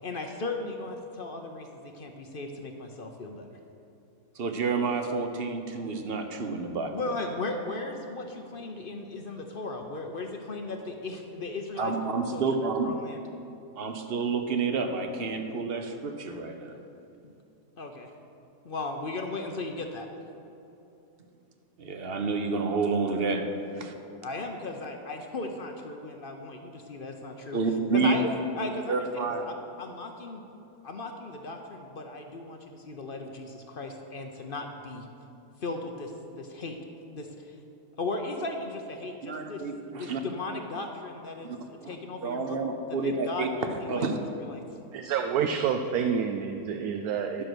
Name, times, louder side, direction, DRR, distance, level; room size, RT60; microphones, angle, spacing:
voice 1, 0.0-3.5 6.9-11.9 12.3-12.4 12.8-13.2 17.2-17.3 17.8-18.1 18.6-20.1 24.2-27.6 27.9-28.2 28.6-29.3 29.8-30.4 30.8-35.1 35.6-36.8 37.1-37.6 38.0-39.6 39.9-42.6 43.0-44.0 44.4-44.6, left 2 dB, 50° left, 4 dB, 0.7 m, -36 dB
voice 2, 4.3-7.0 11.8-12.9 13.8-16.8 21.8-23.9 27.5-28.3 28.9-29.4 39.2-40.2 41.4-41.6 41.8-41.9 42.2-43.5 43.9-44.2 47.4-47.5, right 4 dB, 45° right, 6 dB, 0.8 m, -29 dB
voice 3, 44.9-47.4, right 7 dB, 75° right, 5 dB, 1.0 m, -28 dB
11.5 x 6.6 x 6.2 m, 2.8 s
omnidirectional pair, 1.7 m